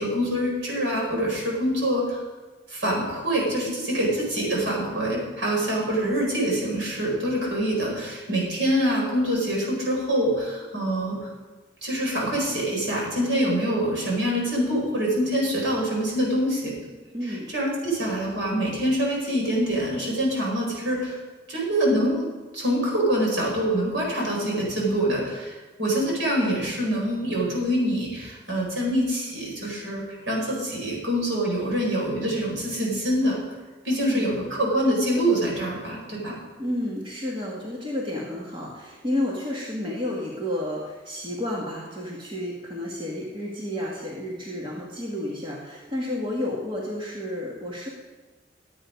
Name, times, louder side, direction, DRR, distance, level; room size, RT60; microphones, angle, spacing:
voice 1, 0.0-2.2 2.7-11.2 11.8-16.8 17.3-21.2 21.5-22.2 22.5-33.4 33.8-36.4, equal, 75° right, -2 dB, 5.0 m, -25 dB
voice 2, 17.1-17.5 34.0-34.3 36.6-47.9, left 1 dB, 25° right, -3 dB, 1.8 m, -31 dB
13.5 x 8.7 x 5.2 m, 1.3 s
head